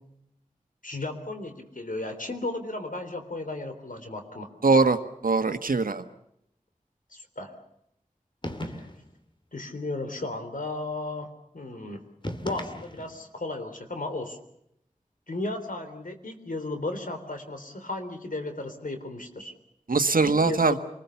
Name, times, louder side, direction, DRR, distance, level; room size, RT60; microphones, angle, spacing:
voice 1, 0.8-4.5 7.1-7.5 8.7-8.9 9.5-11.3 11.5-12.0 12.4-14.4 15.3-19.5 20.2-20.8, left 2 dB, 75° left, 7 dB, 3.5 m, -34 dB
voice 2, 4.6-6.0 19.9-20.7, right 3 dB, 85° right, 9 dB, 1.4 m, -22 dB
sound 1, 8.4-9.2 12.2-13.3, left 1 dB, 35° left, 2.4 m, -36 dB
27.0 x 20.5 x 7.1 m, 0.77 s
wide cardioid pair, 60°, 14 cm